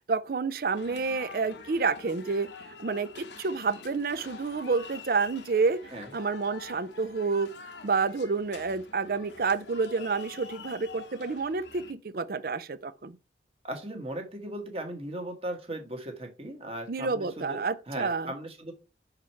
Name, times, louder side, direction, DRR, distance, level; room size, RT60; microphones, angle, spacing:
voice 1, 0.1-2.5 2.8-7.5 7.8-13.2 16.9-18.3, right 4 dB, 55° right, 0.5 m, -29 dB
sound 1, 0.7-11.9, left 4 dB, 85° left, 1.1 m, -47 dB
voice 2, 13.6-17.6 17.9-18.7, right 1 dB, 35° right, 1.5 m, -37 dB
5.8 x 4.9 x 4.5 m
head